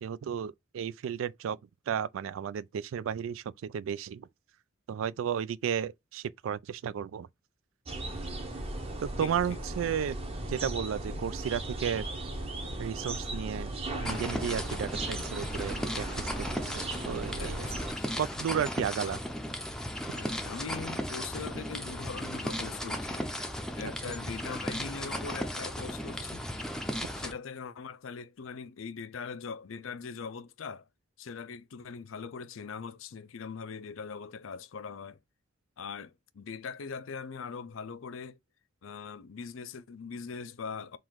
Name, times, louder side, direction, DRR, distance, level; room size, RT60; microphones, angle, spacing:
voice 1, 0.0-1.6 1.9-4.3 4.9-7.3 9.0-10.2 10.5-12.1 12.8-13.7 14.0-17.7 18.2-19.2 23.8-23.9, right 8 dB, 80° right, 0.3 m, -33 dB
sound 1, 7.9-17.9, right 2 dB, 30° right, 0.9 m, -37 dB
voice 2, 9.2-9.6 14.0-14.2 17.4-18.2 19.0-19.2 20.1-23.3 23.8-26.5 27.2-30.9 31.2-35.2 35.8-38.4 38.8-41.0, left 5 dB, 80° left, 0.5 m, -41 dB
sound 2, 14.0-27.3, equal, 5° left, 0.5 m, -36 dB
3.8 x 2.5 x 4.6 m
head